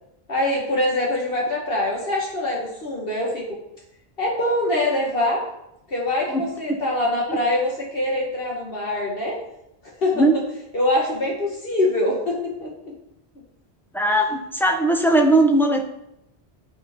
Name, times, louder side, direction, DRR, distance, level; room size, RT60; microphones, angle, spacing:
voice 1, 0.3-3.6 4.2-5.5 5.9-9.4 10.0-10.2 10.7-12.9, left 1 dB, 65° left, -3 dB, 2.1 m, -24 dB
voice 2, 13.9-15.9, right 1 dB, ahead, 3 dB, 1.1 m, -19 dB
12.0 x 5.2 x 5.3 m, 0.83 s
omnidirectional pair, 1.0 m